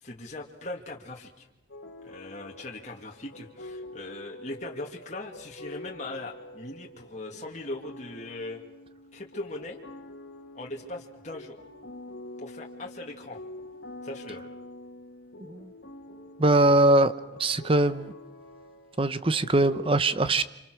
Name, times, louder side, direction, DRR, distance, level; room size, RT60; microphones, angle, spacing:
voice 1, 0.0-1.4 2.0-8.6 9.1-9.8 10.5-11.6 12.4-13.4 14.0-14.4, left 2 dB, 35° left, -1 dB, 2.3 m, -39 dB
sound 1, 1.7-19.9, left 1 dB, 65° left, 2.3 m, -46 dB
voice 2, 15.4-15.7 16.4-17.1 17.4-18.1 19.0-20.4, right 2 dB, 25° right, 13 dB, 0.9 m, -22 dB
29.5 x 27.0 x 6.3 m, 0.93 s
head